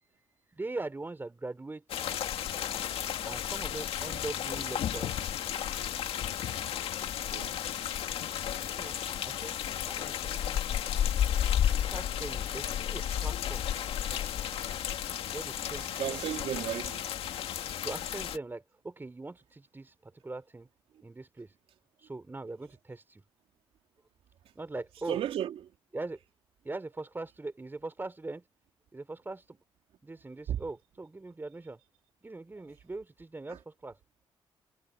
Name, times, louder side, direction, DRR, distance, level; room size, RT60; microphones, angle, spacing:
voice 1, 0.0-1.8 3.2-5.3 8.8-9.0 9.2-10.9 11.7-13.7 15.3-16.2 17.8-20.7 21.0-21.6 22.0-23.2 24.6-25.2 25.9-26.2 26.6-28.5 28.9-29.6 30.0-31.8 32.2-34.0, right 2 dB, 20° right, 3.8 m, -41 dB
sound 1, 1.9-18.4, left 10 dB, 75° left, 2.2 m, -33 dB
voice 2, 7.3-7.6 16.0-17.0 25.1-25.5 30.5-30.6, right 10 dB, 75° right, 3.4 m, -33 dB
cardioid pair, 75°, 10 cm